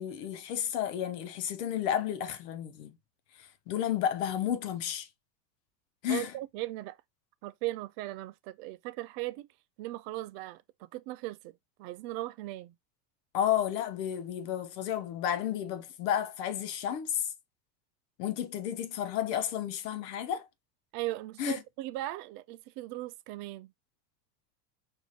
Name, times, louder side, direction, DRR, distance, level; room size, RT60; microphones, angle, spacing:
voice 1, 0.0-2.9 3.4-5.1 6.0-6.3 13.3-17.3 18.2-20.5 21.4-21.6, left 10 dB, 70° left, 1.0 m, -32 dB
voice 2, 6.1-7.0 7.4-9.5 9.8-12.7 20.9-23.7, right 17 dB, 45° right, 0.5 m, -38 dB
4.8 x 2.8 x 3.9 m
supercardioid pair, 115°, 50 cm